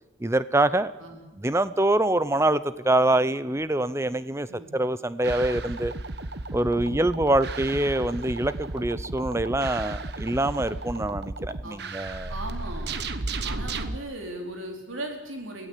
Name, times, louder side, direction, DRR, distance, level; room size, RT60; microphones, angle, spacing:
voice 1, 0.2-0.9 1.4-4.5 4.7-5.9 6.5-12.3, right 1 dB, 15° right, 15 dB, 0.6 m, -25 dB
sound 1, 5.2-14.0, right 2 dB, 55° right, 1.1 m, -34 dB
voice 2, 6.7-7.1 11.6-11.8 12.3-12.9 13.4-15.7, right 1 dB, 90° right, 2 dB, 4.6 m, -37 dB
23.5 x 16.0 x 8.4 m, 1.1 s
head